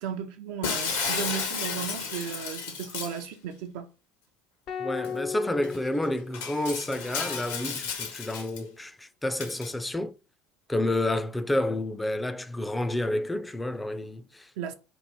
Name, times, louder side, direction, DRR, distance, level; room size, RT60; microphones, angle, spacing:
voice 1, 0.0-3.9 14.6-14.7, right 8 dB, 60° right, 0.5 m, -35 dB
Shatter, 0.6-3.2 5.0-5.1 5.6-5.7 6.3-8.6 9.4-9.7, left 6 dB, 70° left, 0.9 m, -33 dB
sound 1, 4.7-7.0, left 7 dB, 50° left, 0.6 m, -37 dB
voice 2, 4.8-10.1 10.7-14.5, left 1 dB, 10° left, 0.4 m, -30 dB
3.1 x 2.5 x 4.4 m
figure-of-eight pair, 65°, 0 cm